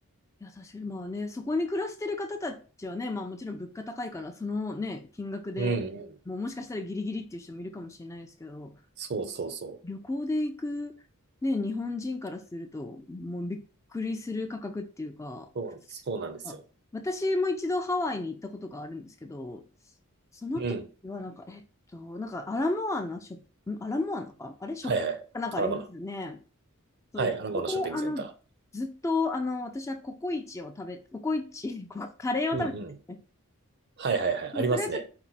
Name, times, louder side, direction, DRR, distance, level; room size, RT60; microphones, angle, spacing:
voice 1, 0.4-5.8 6.3-8.7 9.8-10.9 11.4-13.6 13.9-15.5 16.4-16.5 16.9-19.6 20.4-20.7 21.0-21.6 21.9-23.4 23.7-24.9 25.3-26.4 27.1-27.3 27.7-28.3 28.7-32.7 33.1-33.2 34.5-34.9, left 2 dB, 15° left, 0.3 m, -33 dB
voice 2, 5.6-6.1 9.0-9.8 15.5-16.6 20.5-20.8 24.8-25.2 25.6-25.8 27.2-28.3 32.5-32.9 34.0-35.0, right 4 dB, 50° right, 0.5 m, -31 dB
4.4 x 2.1 x 3.9 m
head